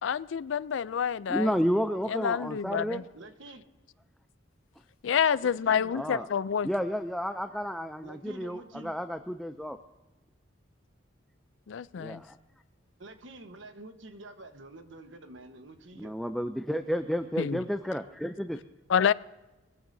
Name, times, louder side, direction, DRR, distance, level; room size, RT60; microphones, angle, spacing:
voice 1, 0.0-1.5 2.1-3.0 5.0-6.7 11.7-12.2 17.4-17.6 18.9-19.1, left 7 dB, 75° left, 0.4 m, -28 dB
voice 2, 1.3-3.0 5.9-6.3 6.6-9.8 12.0-12.4 16.0-18.6, equal, ahead, 0.4 m, -31 dB
voice 3, 3.1-3.6 5.4-6.3 8.0-9.0 13.0-16.2, right 2 dB, 75° right, 1.2 m, -47 dB
22.0 x 15.0 x 2.7 m
head